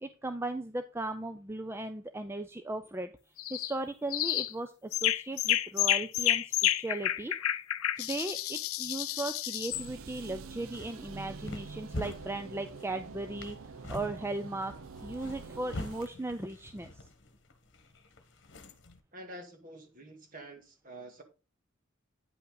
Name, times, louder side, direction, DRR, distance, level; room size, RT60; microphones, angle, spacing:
voice 1, 0.0-3.1 3.5-7.3 7.9-13.6 13.9-14.7 15.0-16.9, right 2 dB, 10° right, 9 dB, 0.4 m, -37 dB
sound 1, 3.4-3.7 4.1-4.5 4.9-9.9, left 13 dB, 85° left, 0.6 m, -30 dB
sound 2, 9.7-16.1, right 4 dB, 80° right, 0.6 m, -46 dB
sound 3, 10.5-19.0, left 2 dB, 55° left, 1.2 m, -45 dB
voice 2, 19.1-21.2, right 1 dB, 40° right, 4 dB, 1.9 m, -47 dB
9.4 x 5.6 x 3.9 m, 0.32 s
head